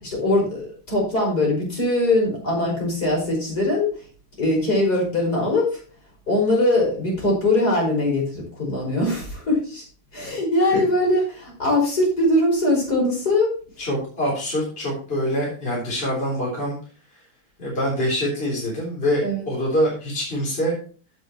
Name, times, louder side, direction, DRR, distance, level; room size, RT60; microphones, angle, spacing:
voice 1, 0.0-3.9 4.4-5.8 6.3-9.8 10.1-13.5 19.2-19.4, left 1 dB, 45° left, -2 dB, 5.6 m, -21 dB
voice 2, 13.8-16.8 17.6-20.8, equal, 25° left, -4 dB, 3.8 m, -25 dB
16.0 x 6.0 x 3.0 m, 0.39 s
omnidirectional pair, 2.3 m